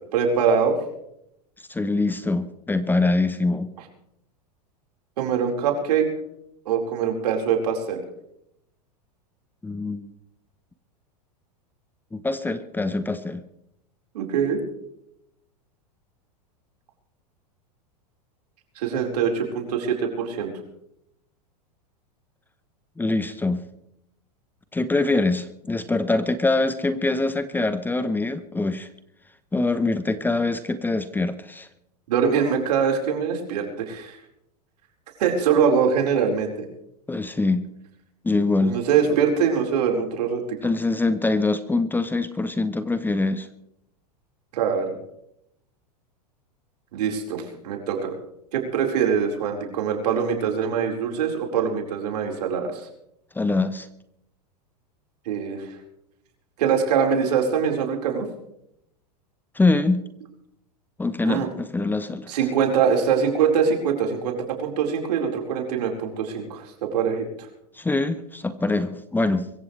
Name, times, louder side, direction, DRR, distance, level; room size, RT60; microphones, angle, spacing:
voice 1, 0.1-0.7 5.2-6.1 6.6-8.0 14.1-14.6 18.8-20.5 32.1-34.2 35.2-36.7 38.6-40.6 44.5-44.9 46.9-48.2 48.5-52.9 55.2-55.7 56.6-58.3 61.2-61.5 62.3-67.3, right 7 dB, 75° right, 1 dB, 4.6 m, -23 dB
voice 2, 1.7-3.7 9.6-10.1 12.1-13.4 23.0-23.6 24.7-28.9 29.5-31.7 37.1-37.7 38.2-38.8 40.6-43.5 53.3-53.9 59.5-60.0 61.0-62.3 67.7-69.5, left 3 dB, 10° left, 12 dB, 0.9 m, -24 dB
23.5 x 15.0 x 3.3 m, 0.79 s
hypercardioid pair, 110°, 21 cm